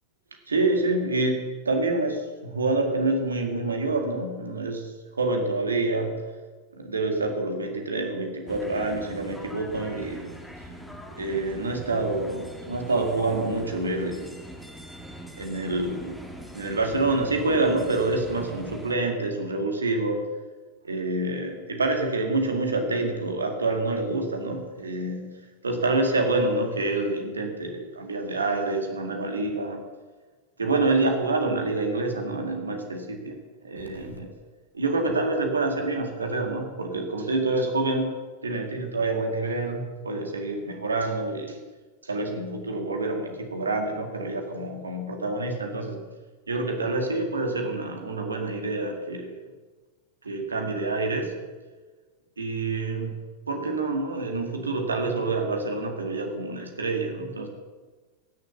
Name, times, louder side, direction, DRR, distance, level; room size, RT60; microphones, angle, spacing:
voice 1, 0.5-6.2 6.7-10.3 11.2-14.4 15.4-16.2 16.5-20.2 20.8-29.8 30.6-33.4 33.6-34.3 34.7-38.1 38.4-41.6 42.0-46.0 46.5-49.4 50.2-51.3 52.4-53.2 53.5-57.5, right 2 dB, 75° right, 4 dB, 2.0 m, -27 dB
sound 1, 8.5-18.9, equal, 5° left, 1.7 m, -42 dB
17.0 x 6.7 x 6.8 m, 1.3 s
figure-of-eight pair, 90°, 0 cm